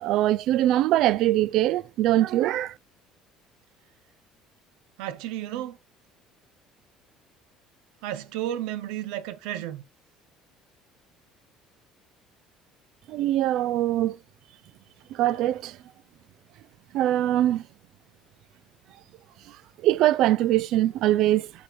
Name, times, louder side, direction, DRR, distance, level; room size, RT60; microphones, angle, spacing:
voice 1, 0.0-2.7 13.1-14.2 15.1-15.8 16.9-17.6 19.8-21.5, right 14 dB, 50° right, 0.3 m, -22 dB
voice 2, 5.0-5.8 8.0-9.8, right 12 dB, 85° right, 0.7 m, -32 dB
8.4 x 3.6 x 4.6 m
cardioid pair, 180°, 0 cm